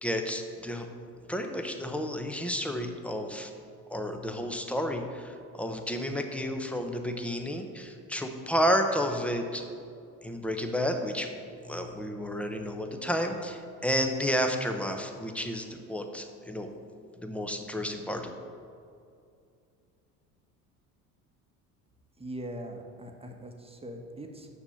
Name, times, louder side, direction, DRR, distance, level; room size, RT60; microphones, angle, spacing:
voice 1, 0.0-0.9 1.3-3.5 3.9-9.6 10.2-11.3 11.6-16.7 17.2-18.3, equal, 5° left, 5 dB, 1.0 m, -31 dB
voice 2, 22.2-24.5, right 1 dB, 15° right, 3 dB, 1.4 m, -41 dB
7.1 x 6.1 x 7.1 m, 2.4 s
hypercardioid pair, 70°, 43 cm